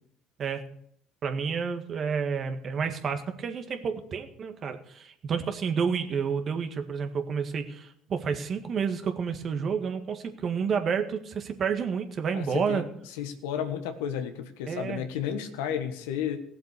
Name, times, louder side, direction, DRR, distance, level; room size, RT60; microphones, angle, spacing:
voice 1, 1.2-12.8 14.7-15.0, right 6 dB, 50° right, 7 dB, 1.8 m, -30 dB
voice 2, 12.3-12.8 13.2-16.4, left 9 dB, 80° left, 8 dB, 1.4 m, -32 dB
17.0 x 7.8 x 6.7 m, 0.70 s
hypercardioid pair, 65°, 0 cm